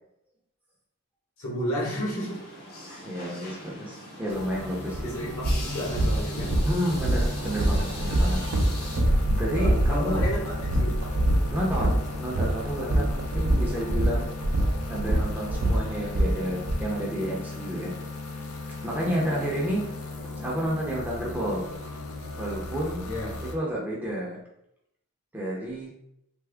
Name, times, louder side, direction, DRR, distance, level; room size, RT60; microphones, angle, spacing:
voice 1, 1.4-2.4 5.0-6.6 9.5-11.0 18.9-19.5 23.0-23.4, equal, 70° left, -4 dB, 1.2 m, -33 dB
sound 1, 2.1-9.0, left 1 dB, 45° left, 0.7 m, -41 dB
voice 2, 2.9-5.3 6.6-8.4 9.4-10.2 11.5-14.3 14.9-17.9 18.8-19.9 20.2-21.6 22.4-23.1 23.5-24.4 25.3-25.9, equal, 10° right, -4 dB, 0.6 m, -30 dB
sound 2, 4.3-23.5, left 2 dB, 90° left, 0.5 m, -37 dB
sound 3, 4.9-5.0 5.4-16.8, right 1 dB, 65° right, 0.5 m, -25 dB
3.4 x 2.0 x 3.4 m, 0.78 s
head